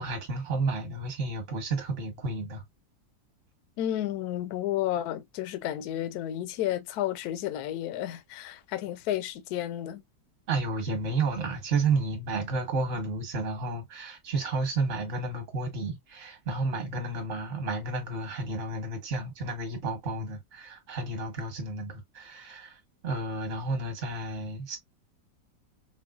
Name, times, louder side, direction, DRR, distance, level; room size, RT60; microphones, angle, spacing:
voice 1, 0.0-2.6 10.5-24.8, right 3 dB, 45° right, 1.3 m, -31 dB
voice 2, 3.8-10.0, left 12 dB, 70° left, 1.0 m, -32 dB
4.5 x 2.0 x 2.3 m
omnidirectional pair, 2.0 m